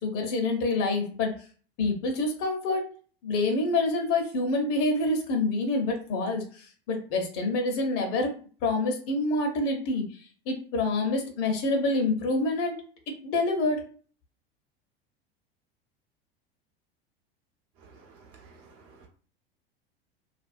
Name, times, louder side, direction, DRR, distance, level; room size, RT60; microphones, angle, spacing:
voice 1, 0.0-1.4 1.8-2.9 3.2-8.3 8.6-10.1 10.5-12.7 13.1-13.8, left 2 dB, 50° left, 3 dB, 0.9 m, -27 dB
voice 2, 17.8-19.1, right 4 dB, 50° right, 0 dB, 1.0 m, -54 dB
2.5 x 2.2 x 2.5 m, 0.41 s
hypercardioid pair, 85°, 30 cm